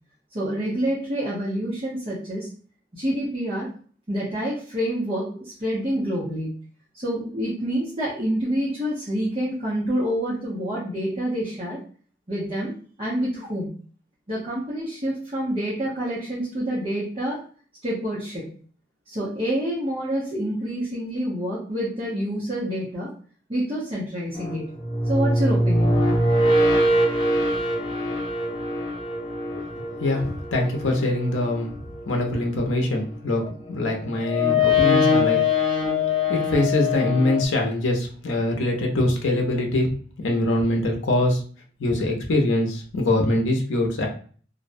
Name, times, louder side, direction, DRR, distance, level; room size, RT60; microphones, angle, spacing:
voice 1, 0.3-2.5 2.9-3.7 4.1-6.5 6.9-11.8 12.3-12.7 13.0-13.7 14.3-17.4 17.8-18.5 19.1-23.1 23.5-24.7 25.0-26.2, equal, 30° right, -7 dB, 0.7 m, -27 dB
sound 1, 24.3-32.4 33.4-37.5, left 2 dB, 25° left, 0.5 m, -23 dB
voice 2, 29.5-31.8 32.1-33.4 33.7-35.4 36.3-39.9 40.2-41.4 41.8-44.1, left 1 dB, 85° left, 1 dB, 0.6 m, -23 dB
2.5 x 2.1 x 2.5 m, 0.44 s
head